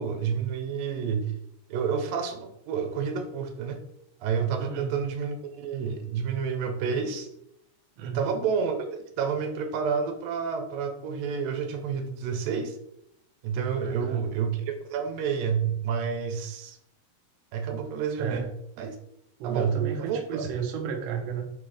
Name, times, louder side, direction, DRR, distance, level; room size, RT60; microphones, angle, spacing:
voice 1, 0.0-1.3 1.7-3.8 4.2-7.3 8.0-12.8 13.4-16.8 17.5-18.5 18.8-19.0 19.4-20.5, right 6 dB, 70° right, 6 dB, 2.4 m, -29 dB
voice 2, 4.6-4.9 8.0-8.3 13.8-14.3 18.2-18.5 19.4-21.4, right 7 dB, 90° right, 2 dB, 1.4 m, -33 dB
6.0 x 4.5 x 5.0 m, 0.77 s
omnidirectional pair, 4.5 m